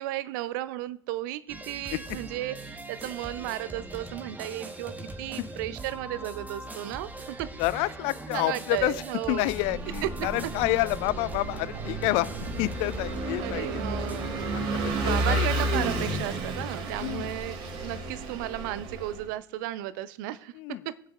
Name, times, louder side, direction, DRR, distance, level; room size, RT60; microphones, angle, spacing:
voice 1, 0.0-7.5 8.3-9.5 10.0-10.5 13.4-14.3 15.0-21.0, right 14 dB, 60° right, 16 dB, 0.6 m, -34 dB
sound 1, 1.5-14.7, right 2 dB, 15° right, 1.3 m, -41 dB
voice 2, 7.6-9.0 9.3-12.3 12.6-13.8 14.5-15.5 17.0-17.3 20.5-20.9, left 20 dB, 50° left, 20 dB, 0.4 m, -29 dB
Vehicle / Engine, 9.4-19.2, right 2 dB, 45° right, 2.6 m, -32 dB
22.5 x 8.0 x 2.4 m, 0.74 s
figure-of-eight pair, 75°, 12 cm